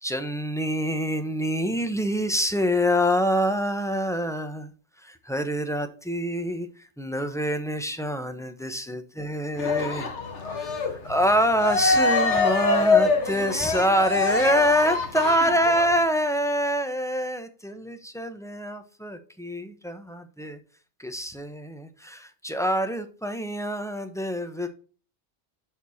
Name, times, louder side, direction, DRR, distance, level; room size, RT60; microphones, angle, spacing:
voice 1, 0.0-4.7 5.0-10.1 10.5-20.6 21.0-24.7, equal, 5° left, 7 dB, 0.9 m, -26 dB
Cheering, 9.6-16.0, left 3 dB, 85° left, 1.7 m, -24 dB
11.0 x 4.4 x 4.2 m, 0.39 s
omnidirectional pair, 1.2 m